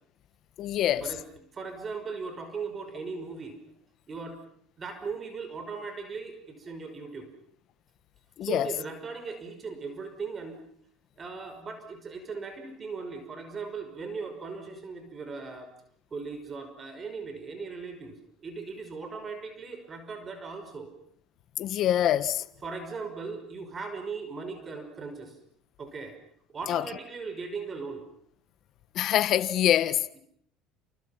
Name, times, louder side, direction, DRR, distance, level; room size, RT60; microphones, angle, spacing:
voice 1, 0.6-1.0 8.4-8.7 21.6-22.4 26.7-26.8 28.9-30.1, left 11 dB, 55° left, 1.5 m, -25 dB
voice 2, 1.5-3.6 4.1-4.4 4.8-7.3 8.4-10.6 11.2-15.7 16.1-20.9 22.6-25.4 25.8-26.2 26.5-28.1, right 4 dB, 30° right, 5.6 m, -38 dB
29.5 x 29.0 x 5.8 m
supercardioid pair, 95°, 0 cm